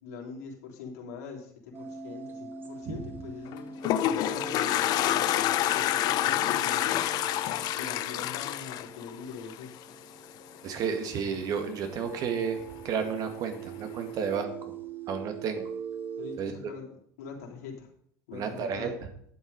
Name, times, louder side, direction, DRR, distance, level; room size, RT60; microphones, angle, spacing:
voice 1, 0.0-3.7 4.2-5.4 5.7-7.2 7.8-9.7 16.2-17.9 18.3-18.9, left 5 dB, 90° left, -1 dB, 3.2 m, -43 dB
sound 1, 1.7-16.4, right 5 dB, 25° right, 1.6 m, -42 dB
Toilet flush, 3.5-9.8, left 13 dB, 55° left, 0.7 m, -27 dB
voice 2, 10.6-12.6 12.8-14.5 15.1-15.6 16.4-16.5 18.3-18.9, right 6 dB, 50° right, 6 dB, 2.1 m, -31 dB
10.5 x 7.8 x 5.4 m, 0.69 s
supercardioid pair, 110°, 8 cm